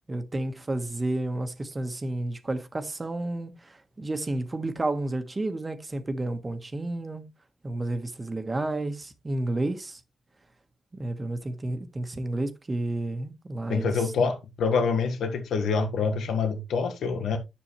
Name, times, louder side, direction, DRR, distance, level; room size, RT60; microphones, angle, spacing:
voice 1, 0.1-7.3 7.6-10.0 10.9-14.3, right 2 dB, 25° right, 1.5 m, -31 dB
voice 2, 13.7-17.4, left 5 dB, 80° left, 1.5 m, -26 dB
10.5 x 6.1 x 3.2 m
cardioid pair, 70°, 0 cm